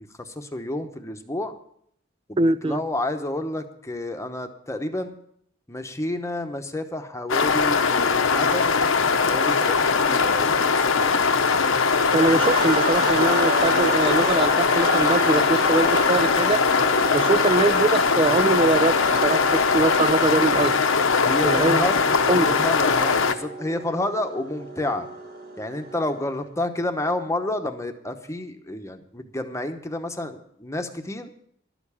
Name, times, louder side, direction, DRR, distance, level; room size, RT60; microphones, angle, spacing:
voice 1, 0.2-1.6 2.3-5.1 5.7-8.7 9.3-11.5 17.1-17.3 21.2-22.0 22.4-25.1 25.6-31.3, left 1 dB, 15° left, 6 dB, 1.0 m, -30 dB
voice 2, 2.4-2.8 12.1-16.6 17.1-18.9 19.2-20.8 21.4-21.9 22.3-22.5, right 3 dB, 25° right, 17 dB, 0.4 m, -22 dB
sound 1, 7.3-23.3, left 5 dB, 75° left, 0.9 m, -21 dB
sound 2, 12.2-26.3, right 1 dB, 55° right, 1.7 m, -31 dB
12.0 x 7.0 x 8.4 m, 0.68 s
head